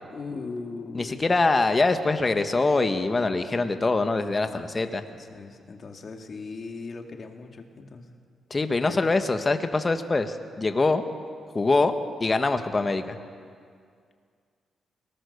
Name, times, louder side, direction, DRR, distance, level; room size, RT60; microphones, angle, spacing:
voice 1, 0.1-1.2 4.5-8.2 8.8-9.1, left 4 dB, 50° left, 4 dB, 2.2 m, -39 dB
voice 2, 0.9-5.0 8.5-11.0 11.5-11.9 12.2-13.2, left 3 dB, 30° left, 8 dB, 1.5 m, -24 dB
22.0 x 18.5 x 6.7 m, 2.2 s
cardioid pair, 70°, 0 cm